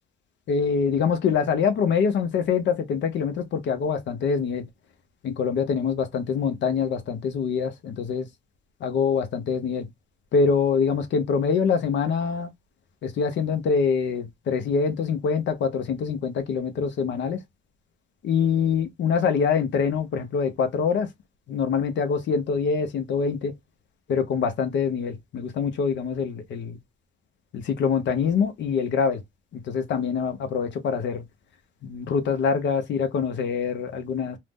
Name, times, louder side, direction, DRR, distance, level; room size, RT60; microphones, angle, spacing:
voice 1, 0.5-4.7 5.2-8.3 8.8-9.9 10.3-12.5 13.0-17.4 18.2-21.1 21.5-23.5 24.1-26.8 27.5-29.2 29.5-31.2 31.8-34.4, left 6 dB, 65° left, 0.6 m, -25 dB
2.5 x 2.0 x 3.4 m
cardioid pair, 90°, 20 cm